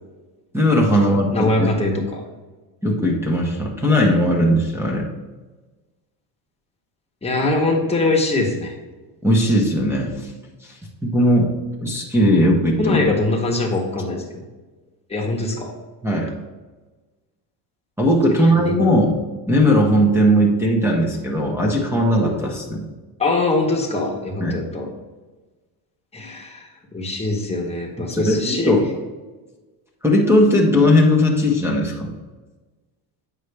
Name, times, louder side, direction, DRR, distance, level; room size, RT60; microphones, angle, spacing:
voice 1, 0.5-1.7 2.8-5.1 9.2-10.1 11.0-11.5 11.8-13.0 16.0-16.3 18.0-19.2 19.5-22.9 24.4-24.6 28.1-28.8 30.0-32.1, equal, 5° right, -1 dB, 0.7 m, -18 dB
voice 2, 1.1-2.2 7.2-8.7 12.8-14.4 15.1-15.7 18.3-18.7 23.2-24.9 26.1-28.8, left 2 dB, 15° left, 0 dB, 1.0 m, -22 dB
8.2 x 5.5 x 3.3 m, 1.2 s
cardioid pair, 155°, 45 cm